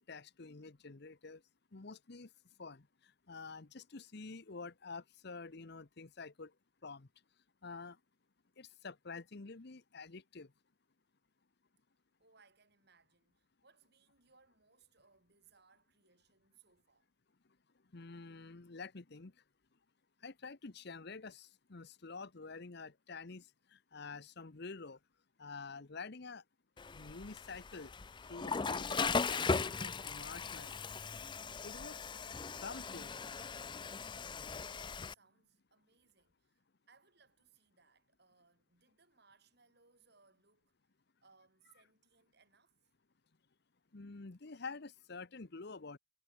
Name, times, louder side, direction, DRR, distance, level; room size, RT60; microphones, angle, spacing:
voice 1, 0.0-1.4 1.7-2.3 2.6-6.5 6.8-7.1 7.6-8.0 8.6-10.5 17.9-19.4 20.2-25.0 25.4-26.4 26.9-27.9 28.2-30.9 31.6-33.2 43.9-46.0, left 4 dB, 55° left, 0.9 m, -49 dB
voice 2, 12.2-17.1 34.8-40.7 41.2-42.9, right 5 dB, 55° right, 6.5 m, -69 dB
Water / Toilet flush, 26.8-35.1, left 4 dB, 25° left, 0.5 m, -38 dB
head